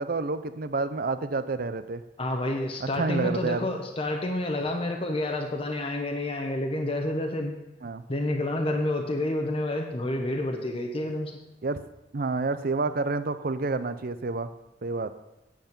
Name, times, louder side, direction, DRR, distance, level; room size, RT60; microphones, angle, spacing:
voice 1, 0.0-2.0 2.8-3.7 7.8-8.0 11.6-11.8 12.1-14.5 14.8-15.1, right 3 dB, 55° right, 12 dB, 0.6 m, -29 dB
voice 2, 2.2-7.5 8.1-11.3, left 1 dB, 30° left, 1 dB, 0.9 m, -29 dB
9.4 x 7.7 x 5.3 m, 0.94 s
head